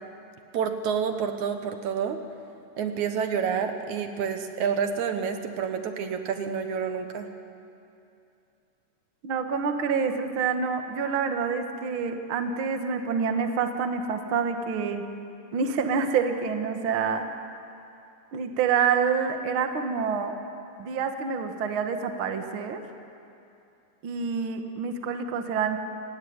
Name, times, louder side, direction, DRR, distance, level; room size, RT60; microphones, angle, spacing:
voice 1, 0.5-2.2 2.8-7.3, right 7 dB, 75° right, 7 dB, 2.6 m, -28 dB
voice 2, 9.2-15.0 15.5-17.2 18.3-20.4 20.8-22.8 24.0-25.8, right 6 dB, 50° right, 6 dB, 2.0 m, -27 dB
26.5 x 18.0 x 9.6 m, 2.7 s
omnidirectional pair, 3.5 m